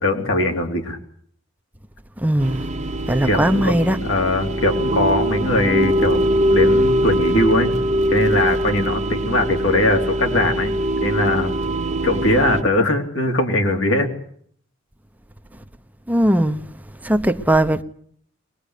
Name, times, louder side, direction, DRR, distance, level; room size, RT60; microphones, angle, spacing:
voice 1, 0.0-1.0 3.2-3.7 4.0-6.2 6.5-7.7 8.1-10.7 11.0-11.5 12.0-14.1, left 1 dB, 70° left, 3.7 m, -20 dB
voice 2, 2.2-2.6 3.1-4.0 16.1-16.6 17.0-17.8, right 1 dB, 10° right, 1.0 m, -18 dB
sound 1, 2.4-12.6, right 1 dB, 35° right, 1.0 m, -22 dB
23.0 x 20.0 x 8.4 m
head